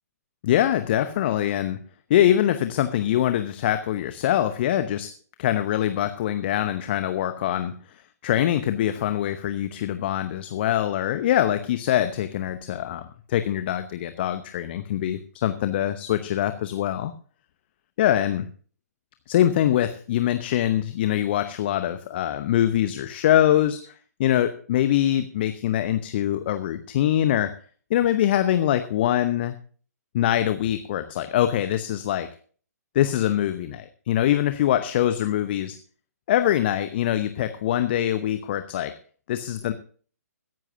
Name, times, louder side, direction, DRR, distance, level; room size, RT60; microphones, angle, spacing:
voice 1, 0.4-1.8 2.1-5.1 5.4-7.8 8.2-17.1 18.0-18.5 19.3-23.8 24.2-27.5 27.9-29.6 30.1-32.3 32.9-35.8 36.3-39.0 39.3-39.7, left 11 dB, 40° left, 10 dB, 0.9 m, -23 dB
22.0 x 11.0 x 2.7 m, 0.43 s
figure-of-eight pair, 130°, 9 cm